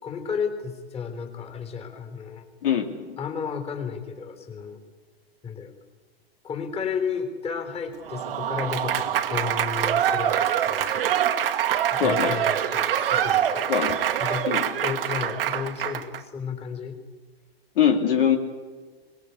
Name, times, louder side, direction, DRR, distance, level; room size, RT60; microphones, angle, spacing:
voice 1, 0.0-2.5 3.2-4.8 5.4-5.7 6.4-11.2 11.9-13.7 14.2-14.5 14.8-17.0, left 6 dB, 20° left, 6 dB, 3.7 m, -33 dB
voice 2, 2.6-3.2 12.0-12.3 13.7-14.0 14.5-14.6 17.8-18.4, left 8 dB, 60° left, 3 dB, 2.7 m, -22 dB
Applause / Crowd, 8.0-16.2, right 10 dB, 60° right, 1.7 m, -25 dB
23.0 x 20.0 x 8.4 m, 1.4 s
figure-of-eight pair, 110°, 31 cm